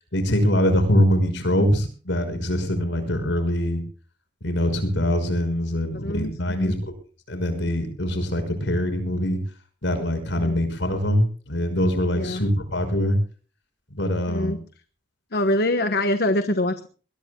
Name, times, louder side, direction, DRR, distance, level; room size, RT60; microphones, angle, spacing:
voice 1, 0.1-3.8 4.4-6.9 7.3-9.4 9.8-13.2 13.9-14.6, equal, 70° left, 7 dB, 6.0 m, -23 dB
voice 2, 5.9-6.8 10.4-10.6 12.1-12.4 14.3-14.6 15.3-16.9, left 1 dB, 55° left, 8 dB, 1.3 m, -24 dB
21.5 x 21.0 x 2.3 m, 0.39 s
head